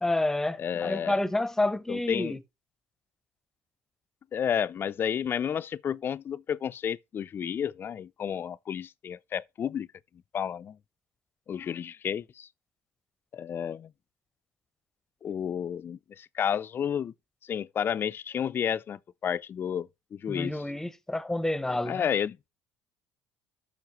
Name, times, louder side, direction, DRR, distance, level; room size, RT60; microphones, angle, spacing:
voice 1, 0.0-2.4 20.3-22.1, left 2 dB, 5° left, 0.7 m, -29 dB
voice 2, 0.6-1.2 1.9-2.4 4.3-9.9 10.3-10.8 11.5-12.5 13.3-13.9 15.2-17.1 17.4-20.6 21.8-22.4, left 8 dB, 40° left, 0.4 m, -31 dB
11.5 x 6.3 x 3.0 m
supercardioid pair, 85°, 6 cm